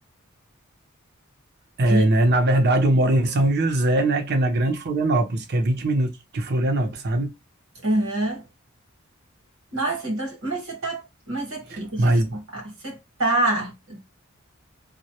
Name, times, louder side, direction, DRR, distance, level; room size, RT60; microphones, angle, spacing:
voice 1, 1.8-7.3 11.7-12.4, right 1 dB, 50° right, 0.6 m, -21 dB
voice 2, 7.8-8.4 9.7-14.1, right 1 dB, 75° right, 1.0 m, -26 dB
2.1 x 2.1 x 2.7 m
head